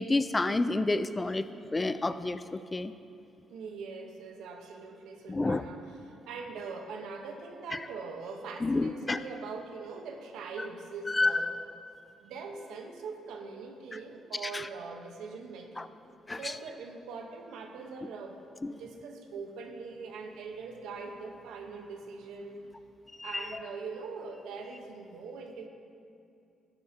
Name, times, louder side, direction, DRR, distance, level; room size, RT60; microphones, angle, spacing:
voice 1, 0.0-1.5 1.7-2.9 5.3-5.6 8.6-9.2 11.1-11.5 14.4-14.7 15.8-15.9 16.3-16.5 18.6-18.7 23.2-23.6, left 2 dB, 20° left, 12 dB, 0.4 m, -29 dB
voice 2, 3.5-11.5 12.2-15.9 16.3-22.7 23.2-25.7, right 4 dB, 85° right, 4 dB, 1.0 m, -42 dB
12.5 x 10.5 x 2.8 m, 2.5 s
cardioid pair, 80°, 0 cm